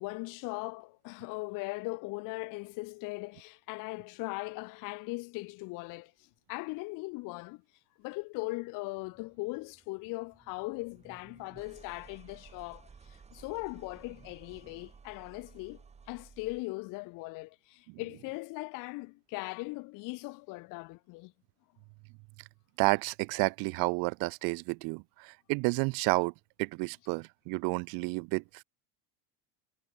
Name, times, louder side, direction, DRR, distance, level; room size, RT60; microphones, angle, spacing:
voice 1, 0.0-7.6 8.0-15.8 16.1-21.3, left 25 dB, 50° left, 1.7 m, -39 dB
sound 1, 9.0-16.8, right 5 dB, 15° right, 6.1 m, -56 dB
voice 2, 22.8-26.3 26.6-28.6, right 32 dB, 60° right, 2.0 m, -31 dB
cardioid pair, 170°, 40 cm